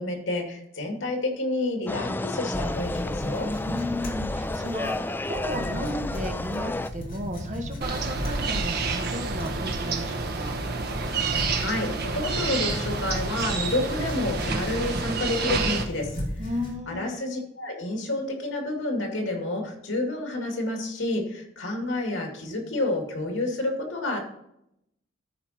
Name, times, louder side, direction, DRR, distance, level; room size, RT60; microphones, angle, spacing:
voice 1, 0.0-3.5 11.5-16.1 16.9-24.2, left 2 dB, 85° left, 2 dB, 2.4 m, -29 dB
sound 1, 1.9-6.9, left 2 dB, 10° left, 0.3 m, -31 dB
sound 2, 2.5-16.8, left 1 dB, 45° left, 2.9 m, -36 dB
voice 2, 3.6-10.6 16.4-17.3, equal, 40° right, 4 dB, 1.4 m, -34 dB
sound 3, 7.8-15.8, right 4 dB, 55° right, 1.2 m, -29 dB
13.0 x 5.0 x 4.3 m, 0.78 s
head